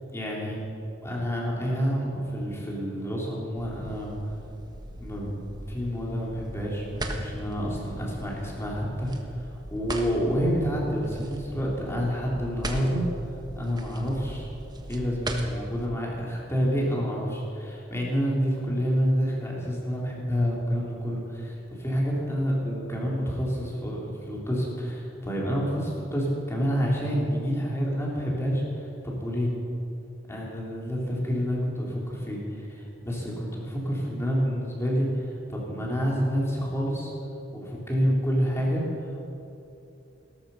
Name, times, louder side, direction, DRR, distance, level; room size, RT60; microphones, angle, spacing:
voice 1, 0.1-0.6 1.0-4.2 5.0-5.3 5.7-9.1 9.4-13.0 13.6-14.5 14.9-21.2 21.8-29.5 30.3-37.1 37.5-39.2, equal, 15° left, -3 dB, 3.7 m, -28 dB
sound 1, 3.6-15.9, right 1 dB, 20° right, 1.4 m, -39 dB
17.5 x 13.5 x 5.8 m, 2.8 s
head